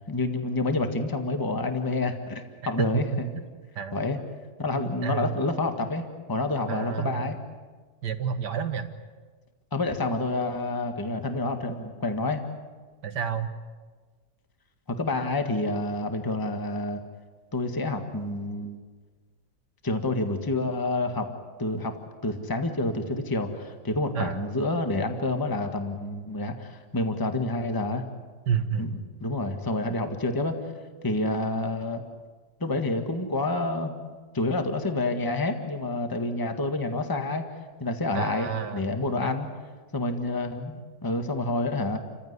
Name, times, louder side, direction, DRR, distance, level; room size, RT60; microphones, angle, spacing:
voice 1, 0.1-3.3 3.9-4.2 4.6-7.4 9.7-12.4 15.0-17.0 17.5-18.8 19.8-21.3 21.6-21.9 22.2-28.0 28.8-30.5 31.0-32.0 32.6-33.9 34.3-37.4 37.8-39.5 39.9-42.0, left 2 dB, 10° left, 6 dB, 1.6 m, -28 dB
voice 2, 4.8-5.3 6.7-7.3 8.0-8.9 13.0-13.5 24.2-24.4 28.5-28.9 38.1-38.9 39.2-39.3, right 7 dB, 65° right, 8 dB, 2.1 m, -30 dB
30.0 x 15.5 x 9.7 m, 1.5 s
omnidirectional pair, 2.0 m